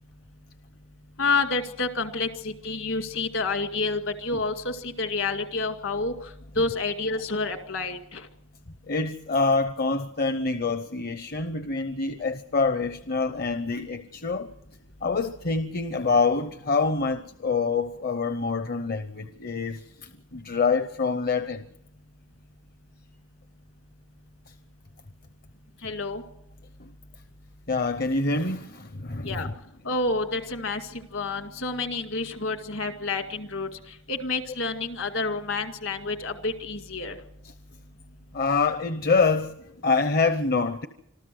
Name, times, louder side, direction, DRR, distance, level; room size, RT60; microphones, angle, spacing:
voice 1, 1.2-6.1 6.6-8.3 25.8-26.2 29.2-29.5 29.8-33.7 34.1-37.2, left 3 dB, 65° left, 2.1 m, -29 dB
voice 2, 8.9-14.5 15.0-21.6 26.8-26.9 27.7-29.5 38.3-39.6 39.8-40.9, left 4 dB, 45° left, 0.8 m, -26 dB
26.0 x 14.0 x 7.7 m
head